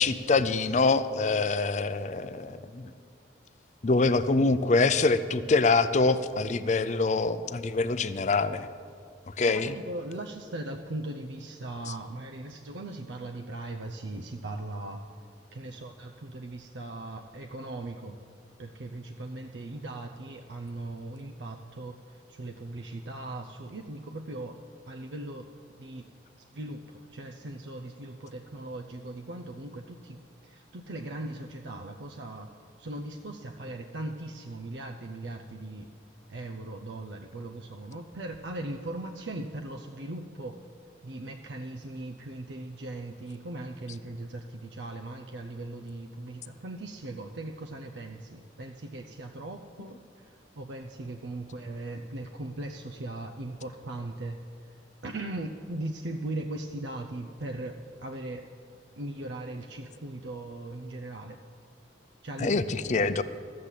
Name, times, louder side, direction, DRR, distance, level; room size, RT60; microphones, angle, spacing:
voice 1, 0.0-2.9 3.8-8.7 9.4-9.7 62.4-62.6 62.9-63.2, left 3 dB, 40° left, 13 dB, 0.5 m, -25 dB
voice 2, 9.4-15.0 15.5-18.2 18.6-25.5 25.8-26.1 26.5-32.5 32.8-35.9 36.3-40.6 41.0-54.4 54.7-58.5 59.0-61.4 62.2-63.2, right 2 dB, 70° right, 4 dB, 0.6 m, -39 dB
13.5 x 7.5 x 8.3 m, 2.2 s
head